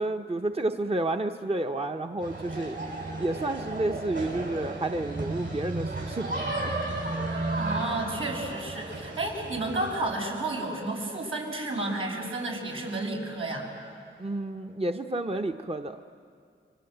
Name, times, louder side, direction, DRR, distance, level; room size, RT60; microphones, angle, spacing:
voice 1, 0.0-2.8 3.2-6.2 6.6-6.7 14.2-16.0, right 2 dB, 30° right, 5 dB, 0.9 m, -30 dB
sound 1, 2.2-10.1, right 2 dB, 65° right, 7.7 m, -33 dB
voice 2, 7.6-13.7, right 2 dB, 80° right, -2 dB, 6.5 m, -31 dB
30.0 x 24.5 x 8.0 m, 2.2 s
wide cardioid pair, 55°, 21 cm